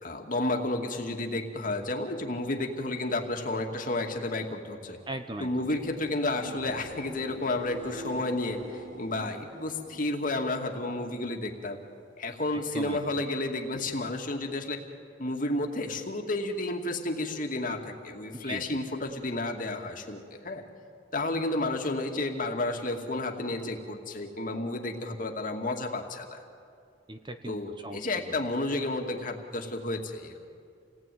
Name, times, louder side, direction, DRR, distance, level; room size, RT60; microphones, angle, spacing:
voice 1, 0.0-5.0 5.4-11.8 12.2-14.8 15.2-20.6 21.1-26.4 27.5-30.5, left 2 dB, 50° left, 3 dB, 2.4 m, -31 dB
voice 2, 5.1-5.5 12.5-13.0 18.5-18.8 27.1-27.6 27.8-28.0, right 2 dB, 25° right, 8 dB, 1.1 m, -38 dB
sound 1, 5.3-11.1 11.5-12.0 19.1-19.2, right 1 dB, 80° right, 3.6 m, -45 dB
28.5 x 19.0 x 9.3 m, 2.3 s
head